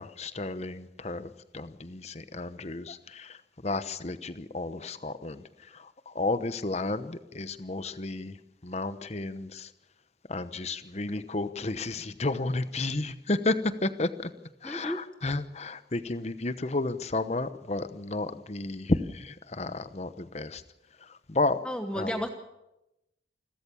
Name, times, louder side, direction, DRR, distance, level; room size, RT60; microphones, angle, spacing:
voice 1, 0.0-9.7 10.3-14.3 14.6-20.6 21.0-21.6 21.9-22.2, left 2 dB, 35° left, 12 dB, 1.0 m, -32 dB
voice 2, 14.6-15.0 21.6-22.3, equal, 5° left, 6 dB, 1.1 m, -32 dB
28.0 x 13.0 x 7.1 m, 0.91 s
head